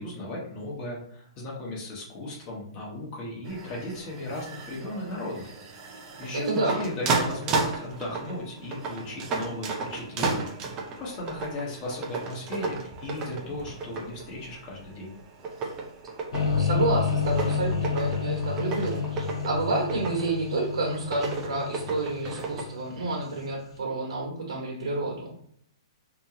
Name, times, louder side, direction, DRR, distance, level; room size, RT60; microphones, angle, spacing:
voice 1, 0.0-5.5 6.2-15.1, left 1 dB, 25° left, -3 dB, 1.2 m, -36 dB
sound 1, 3.4-22.6, right 3 dB, 20° right, 0.5 m, -34 dB
voice 2, 6.3-6.9 16.6-25.3, right 2 dB, 80° right, -1 dB, 1.2 m, -29 dB
sound 2, 16.3-23.4, left 6 dB, 70° left, 1.0 m, -29 dB
3.0 x 2.7 x 3.7 m, 0.66 s
hypercardioid pair, 155°, 3 cm